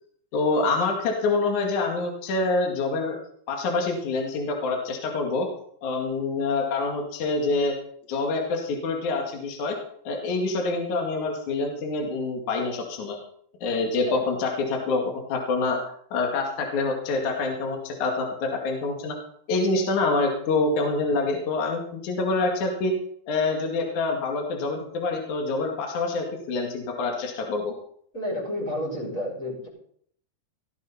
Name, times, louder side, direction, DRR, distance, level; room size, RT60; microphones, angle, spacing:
voice 1, 0.3-3.2 3.5-5.5 5.8-7.8 8.1-9.8 10.0-13.2 13.6-15.8 16.1-19.2 19.5-22.9 23.3-27.7, left 3 dB, 55° left, 2 dB, 3.2 m, -26 dB
voice 2, 28.1-29.7, left 1 dB, 20° left, -4 dB, 7.8 m, -30 dB
17.0 x 14.5 x 4.2 m, 0.64 s
omnidirectional pair, 4.5 m